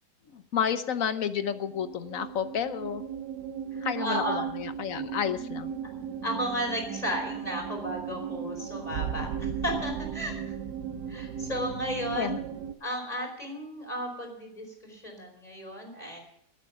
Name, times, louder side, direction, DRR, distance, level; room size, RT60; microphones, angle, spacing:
voice 1, 0.3-3.0 3.8-5.7 12.1-12.4, left 8 dB, 60° left, 11 dB, 1.3 m, -31 dB
sound 1, 1.4-12.7, right 8 dB, 85° right, 1.5 m, -36 dB
voice 2, 3.7-4.4 6.2-10.5 11.1-12.4 12.8-16.2, equal, 25° left, 3 dB, 4.9 m, -34 dB
18.5 x 9.1 x 7.2 m, 0.73 s
omnidirectional pair, 1.8 m